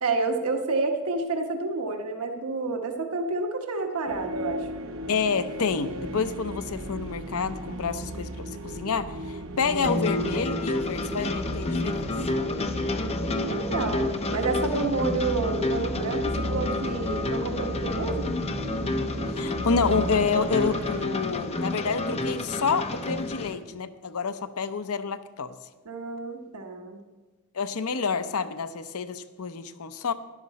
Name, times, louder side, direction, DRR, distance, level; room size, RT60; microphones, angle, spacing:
voice 1, 0.0-4.7 12.9-18.3 25.8-27.0, right 3 dB, 85° right, 4 dB, 1.1 m, -29 dB
sound 1, 4.1-21.1, right 1 dB, 65° right, 0.9 m, -35 dB
voice 2, 5.1-12.1 19.3-25.5 27.5-30.1, left 5 dB, 75° left, 11 dB, 0.7 m, -28 dB
sound 2, 9.7-23.5, left 2 dB, 30° left, 0.7 m, -30 dB
13.0 x 10.5 x 4.2 m, 1.3 s
head